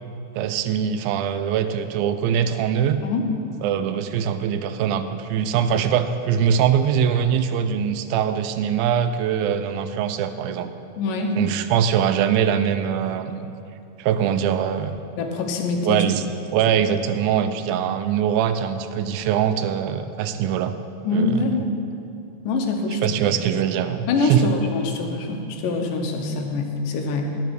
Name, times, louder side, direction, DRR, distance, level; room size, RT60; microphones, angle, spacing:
voice 1, 0.4-3.0 3.6-10.7 11.4-13.5 14.0-15.0 15.8-16.2 16.5-20.8 21.1-21.5 23.0-24.5, right 8 dB, 80° right, 10 dB, 2.2 m, -22 dB
voice 2, 11.0-11.3 15.2-16.0 21.0-21.8 22.4-23.0 24.1-27.4, left 3 dB, 70° left, 4 dB, 2.3 m, -24 dB
12.0 x 10.0 x 4.7 m, 2.7 s
omnidirectional pair, 4.4 m